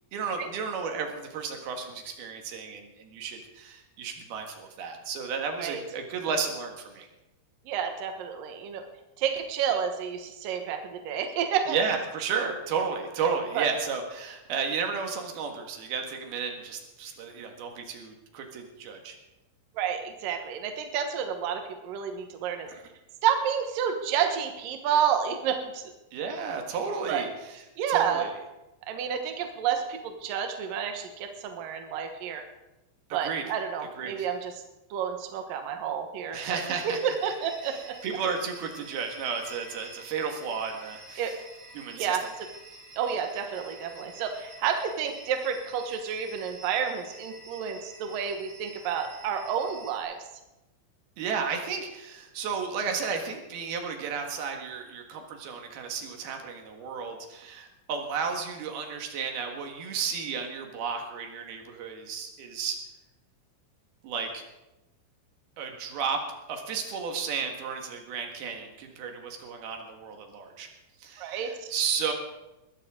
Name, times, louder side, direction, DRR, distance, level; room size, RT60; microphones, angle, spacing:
voice 1, 0.1-7.1 11.7-19.2 22.7-22.8 26.1-27.3 27.9-28.3 33.2-33.4 34.0-34.3 36.3-37.0 38.0-41.3 41.7-42.2 51.2-62.8 64.0-64.4 65.6-66.2 66.5-70.7 71.0-72.1, right 5 dB, 60° right, 3 dB, 3.1 m, -33 dB
voice 2, 7.7-8.8 9.2-11.8 13.5-13.7 19.7-22.7 23.2-25.9 27.1-27.2 27.8-28.3 28.9-32.4 33.1-34.5 34.9-38.0 41.2-41.3 41.9-42.5 43.0-50.2 71.2-71.7, right 8 dB, 80° right, 5 dB, 2.0 m, -30 dB
sound 1, 36.3-50.0, right 2 dB, 25° left, 0.4 m, -49 dB
21.0 x 14.5 x 3.8 m, 0.98 s
omnidirectional pair, 5.9 m